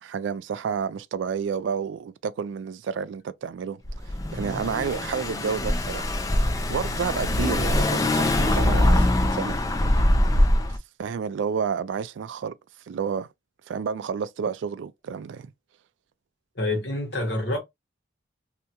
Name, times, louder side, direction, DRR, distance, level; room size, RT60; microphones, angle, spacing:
voice 1, 0.0-6.1 6.7-9.6 11.0-12.5 12.9-13.3 13.7-15.5, right 6 dB, 80° right, 0.3 m, -30 dB
Car / Engine, 3.8-10.8, left 1 dB, 20° left, 0.3 m, -23 dB
voice 2, 16.5-17.6, left 1 dB, 65° left, 1.2 m, -27 dB
2.8 x 2.2 x 2.7 m
head